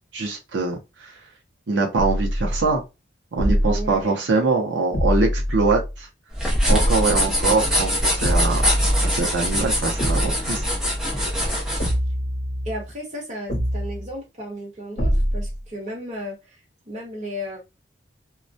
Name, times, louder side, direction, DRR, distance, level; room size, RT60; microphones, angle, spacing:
voice 1, 0.1-1.1 1.7-2.8 3.3-6.1 6.7-10.6, right 3 dB, 85° right, 0.6 m, -23 dB
sound 1, 2.0-2.7 3.4-4.0 4.9-6.0 6.7-7.3 8.2-9.3 10.0-10.6 11.8-12.9 13.5-14.1 15.0-15.6, equal, 40° left, 0.8 m, -24 dB
voice 2, 3.7-4.3 12.6-16.6 16.9-17.6, equal, 40° right, 1.0 m, -34 dB
sound 2, 6.3-11.9, equal, 5° right, 0.6 m, -23 dB
2.2 x 2.1 x 2.6 m
head